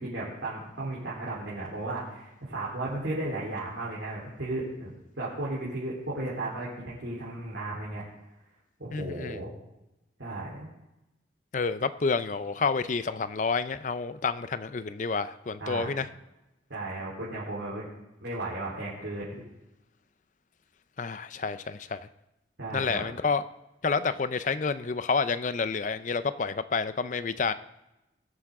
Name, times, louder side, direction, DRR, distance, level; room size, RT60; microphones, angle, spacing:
voice 1, 0.0-8.0 8.8-9.5 10.2-10.7 15.6-15.9 16.7-17.9 18.2-19.4 22.6-23.0, right 2 dB, 85° right, -7 dB, 3.7 m, -35 dB
voice 2, 8.9-9.4 11.5-16.1 21.0-22.1 22.7-23.4 23.8-27.5, left 4 dB, 40° left, 13 dB, 0.5 m, -29 dB
21.0 x 7.1 x 3.7 m, 0.94 s
head